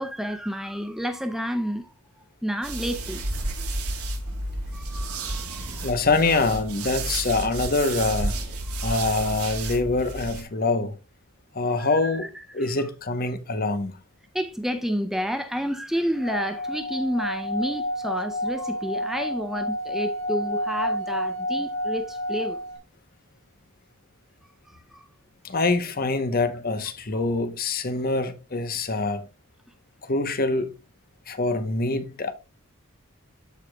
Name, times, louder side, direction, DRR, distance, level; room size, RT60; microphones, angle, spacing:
voice 1, 0.0-1.9 2.4-3.2 4.7-5.9 8.7-9.0 11.8-12.8 14.3-22.6 24.7-25.1 27.1-27.4, equal, ahead, 0.4 m, -30 dB
sound 1, 2.6-10.4, right 2 dB, 80° right, 1.9 m, -31 dB
voice 2, 5.8-8.4 8.8-10.9 11.5-12.3 12.5-14.0 25.4-29.3 30.0-30.7 31.3-32.3, left 3 dB, 40° left, 0.9 m, -25 dB
Singing / Glass, 16.2-22.8, equal, 65° left, 3.6 m, -30 dB
13.5 x 4.9 x 2.3 m
head